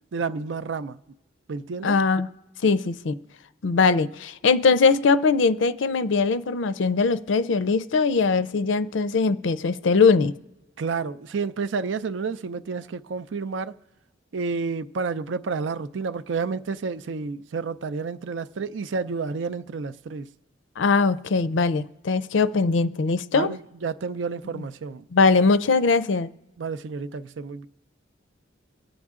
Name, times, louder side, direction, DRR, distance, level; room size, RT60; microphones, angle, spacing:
voice 1, 0.1-1.0 1.5-2.0 10.8-13.7 14.3-20.3 23.3-25.1 26.6-27.7, right 4 dB, 80° right, 0.5 m, -30 dB
voice 2, 1.8-2.3 2.6-3.2 3.6-10.3 20.8-23.6 24.5-24.6 25.1-26.3, left 4 dB, 80° left, 0.5 m, -21 dB
24.5 x 8.7 x 3.7 m
head